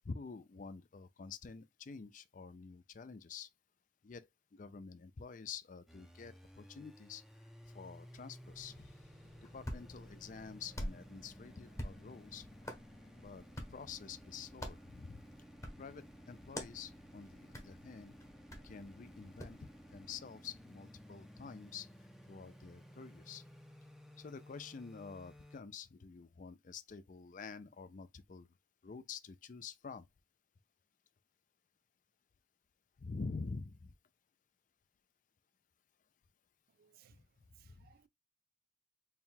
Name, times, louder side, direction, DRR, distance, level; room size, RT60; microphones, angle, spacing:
voice 1, 0.0-3.5 4.0-7.2 7.7-8.9 9.5-12.5 13.2-13.4 13.7-15.2 15.8-18.2 18.6-21.9 22.3-23.4 24.2-28.5 28.8-30.1 33.0-33.9 37.6-37.9, left 5 dB, 45° left, 0.4 m, -48 dB
sound 1, 5.9-25.6, equal, ahead, 0.5 m, -56 dB
sound 2, 8.4-20.2, left 1 dB, 70° left, 1.4 m, -65 dB
Hands, 9.3-19.6, equal, 20° left, 0.9 m, -49 dB
voice 2, 36.8-37.2 37.6-38.1, right 9 dB, 55° right, 0.3 m, -65 dB
4.4 x 2.3 x 3.6 m
head